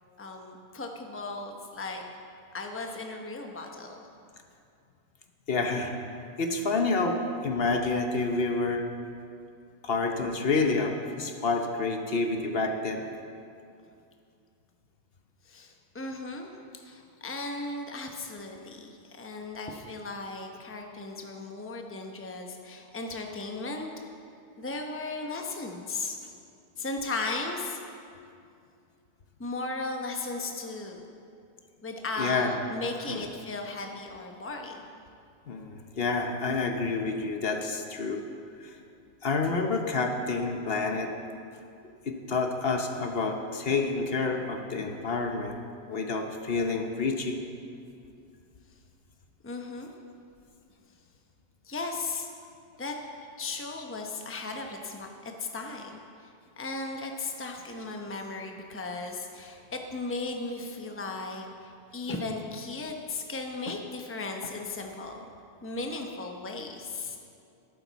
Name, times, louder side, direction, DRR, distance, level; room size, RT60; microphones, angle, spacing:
voice 1, 0.2-2.0 2.5-4.1 15.4-23.9 24.6-26.2 26.8-27.8 29.4-31.0 31.8-34.8 49.4-49.9 51.6-52.3 52.8-52.9 53.4-56.3 56.6-65.2 65.6-67.2, left 3 dB, 15° left, 2 dB, 0.8 m, -36 dB
voice 2, 5.5-5.9 6.4-8.9 9.8-13.1 32.2-32.6 33.1-33.2 35.5-38.3 38.6-38.8 39.2-41.1 42.1-45.6 45.9-47.4, left 3 dB, 60° left, 4 dB, 1.0 m, -28 dB
13.5 x 12.0 x 4.0 m, 2.5 s
omnidirectional pair, 1.2 m